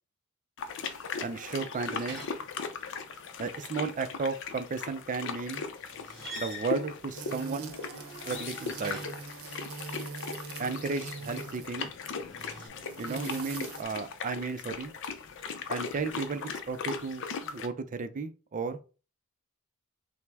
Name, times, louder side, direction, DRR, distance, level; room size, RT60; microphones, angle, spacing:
sound 1, 0.6-17.7, left 5 dB, 60° left, 0.5 m, -39 dB
sound 2, 0.7-3.0 5.8-9.4 12.0-12.7, equal, ahead, 2.3 m, -46 dB
voice 1, 1.2-2.2 3.4-5.6 6.4-7.7 8.2-9.0 10.6-11.9 13.0-14.9 15.7-18.8, right 4 dB, 35° right, 0.4 m, -34 dB
sound 3, 7.1-11.8 12.7-13.8, right 4 dB, 85° right, 0.7 m, -42 dB
5.8 x 2.0 x 3.4 m
head